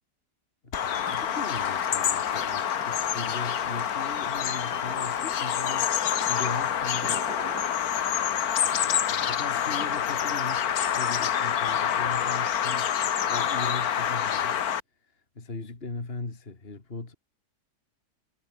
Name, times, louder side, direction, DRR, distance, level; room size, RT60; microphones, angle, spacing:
voice 1, 0.6-7.5 9.1-12.9 13.3-17.2, left 3 dB, 35° left, 2.9 m, -39 dB
Bird vocalization bird call bird song, 0.7-14.8, left 9 dB, 65° left, 1.6 m, -27 dB
Fill (with liquid), 0.9-7.7 8.2-11.6, right 5 dB, 75° right, 2.8 m, -47 dB
omnidirectional pair, 1.7 m